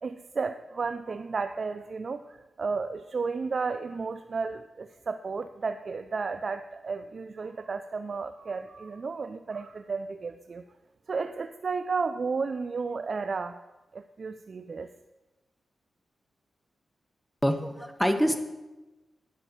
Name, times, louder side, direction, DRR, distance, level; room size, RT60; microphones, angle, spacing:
voice 1, 0.0-10.6 11.1-13.6 13.9-14.9, right 4 dB, 55° right, 9 dB, 0.4 m, -33 dB
voice 2, 17.4-18.4, equal, 5° left, 8 dB, 1.1 m, -25 dB
10.0 x 5.3 x 7.1 m, 1.1 s
cardioid pair, 55°, 0 cm